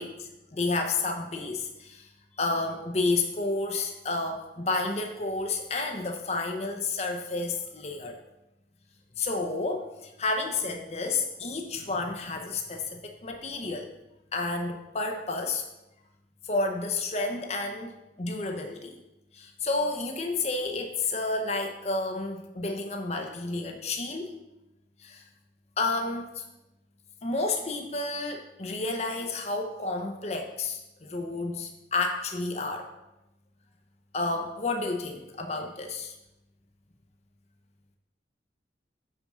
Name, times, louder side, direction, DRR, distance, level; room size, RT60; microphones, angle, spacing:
voice 1, 0.0-2.1 2.4-8.2 9.2-13.9 14.3-15.6 16.4-17.9 18.2-19.0 19.3-24.4 25.0-25.3 25.8-26.4 27.2-32.9 34.1-36.2, left 3 dB, 35° left, 3 dB, 0.7 m, -31 dB
6.2 x 5.0 x 6.6 m, 0.94 s
head